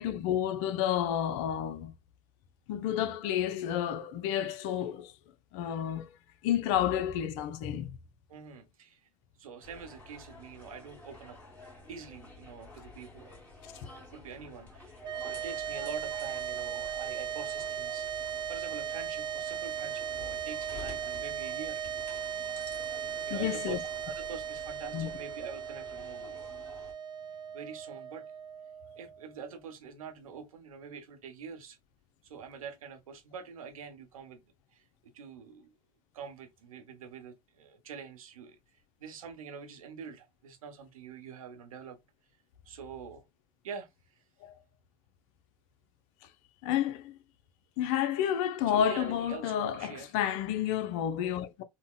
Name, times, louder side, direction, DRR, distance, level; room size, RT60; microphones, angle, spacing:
voice 1, 0.0-1.9 2.7-5.1 5.5-6.1 6.4-8.0 23.3-23.8 24.9-25.1 44.4-44.6 46.6-47.1 47.8-51.6, left 10 dB, 55° left, 0.5 m, -30 dB
voice 2, 8.3-9.1 9.4-13.3 13.9-21.8 23.2-26.8 27.5-28.2 28.9-31.8 32.2-34.4 34.7-35.7 36.1-42.0 42.7-43.3 43.6-44.2 48.7-50.1, right 6 dB, 80° right, 0.8 m, -45 dB
sound 1, 9.6-26.9, left 3 dB, 10° left, 1.4 m, -50 dB
sound 2, 15.0-29.4, right 9 dB, 25° right, 0.4 m, -37 dB
3.8 x 2.1 x 2.2 m
hypercardioid pair, 85°, 18 cm